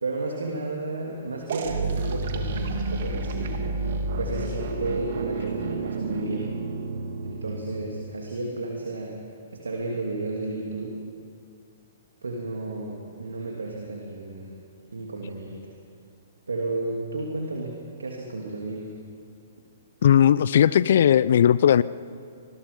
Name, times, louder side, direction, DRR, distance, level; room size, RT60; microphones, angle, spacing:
voice 1, 0.0-3.6 4.2-6.6 7.2-9.2 9.5-11.0 12.2-14.6 14.9-15.7 16.5-18.9, right 2 dB, 80° right, 0 dB, 2.8 m, -32 dB
sound 1, 1.5-8.1, right 3 dB, 60° right, 2.3 m, -30 dB
voice 2, 20.0-21.8, left 9 dB, 60° left, 19 dB, 0.5 m, -17 dB
26.5 x 20.5 x 5.4 m, 2.4 s
figure-of-eight pair, 120°, 0 cm